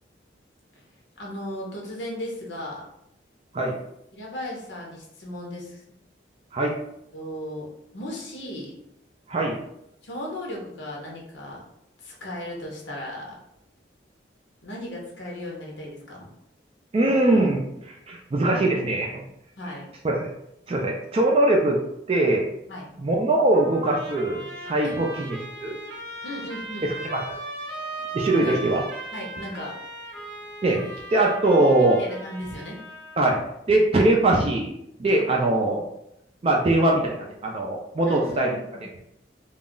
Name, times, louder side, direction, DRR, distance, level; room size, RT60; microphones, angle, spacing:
voice 1, 1.2-2.9 4.1-5.8 7.1-7.7 7.9-8.7 10.0-11.6 12.0-13.3 14.6-16.3 19.6-19.9 22.7-22.9 24.8-25.0 26.2-26.9 28.4-28.6 29.1-29.7 31.5-31.7 32.0-32.8 38.0-38.8, left 1 dB, 85° left, -2 dB, 0.8 m, -36 dB
voice 2, 9.3-9.6 16.9-19.2 20.0-20.3 20.7-21.8 22.1-22.5 23.0-25.8 26.8-27.3 28.1-28.8 30.6-30.8 31.1-32.0 33.2-33.4 33.7-34.7 35.0-35.8 36.4-38.5 38.8-38.9, right 2 dB, 30° right, -1 dB, 0.3 m, -22 dB
Trumpet, 23.5-33.2, right 1 dB, 70° right, 0.7 m, -38 dB
2.3 x 2.0 x 3.6 m, 0.79 s
head